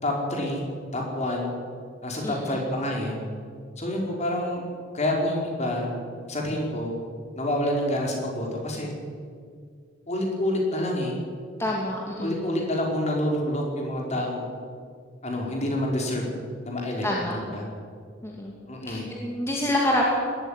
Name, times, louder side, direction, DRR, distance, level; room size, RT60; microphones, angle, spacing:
voice 1, 0.0-0.6 0.9-1.5 2.0-3.2 3.8-4.6 4.9-5.9 6.3-6.9 7.3-8.9 10.1-11.1 12.2-14.5 15.2-16.2 16.6-17.7 18.7-19.0, left 1 dB, 35° left, 0 dB, 4.9 m, -27 dB
voice 2, 2.2-2.6 11.6-12.3 17.0-17.4 18.2-18.5 18.9-20.0, left 1 dB, 15° left, -2 dB, 2.5 m, -27 dB
20.0 x 14.0 x 9.9 m, 2.1 s
head